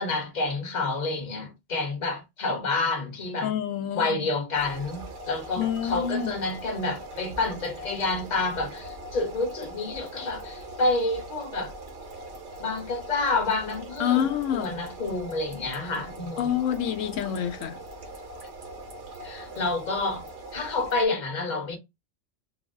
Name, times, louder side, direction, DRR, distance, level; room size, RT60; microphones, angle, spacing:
voice 1, 0.0-3.5 3.9-11.7 12.6-16.5 19.2-20.2 20.5-21.8, left 3 dB, 40° left, 1.1 m, -29 dB
voice 2, 3.4-4.2 5.6-6.3 14.0-14.7 16.4-17.8, left 9 dB, 90° left, 1.0 m, -27 dB
sound 1, 4.5-21.1, right 1 dB, 75° right, 1.2 m, -41 dB
3.8 x 2.0 x 3.5 m
omnidirectional pair, 1.3 m